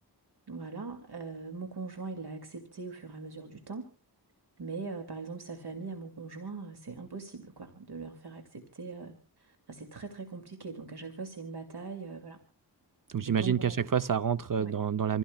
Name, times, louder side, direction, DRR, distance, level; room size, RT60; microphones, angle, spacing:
voice 1, 0.5-3.9 4.6-12.4 13.2-13.8 14.6-14.7, right 4 dB, 70° right, 2.3 m, -41 dB
voice 2, 13.1-15.2, right 7 dB, 50° right, 0.6 m, -28 dB
27.5 x 16.0 x 2.2 m
wide cardioid pair, 90°, 41 cm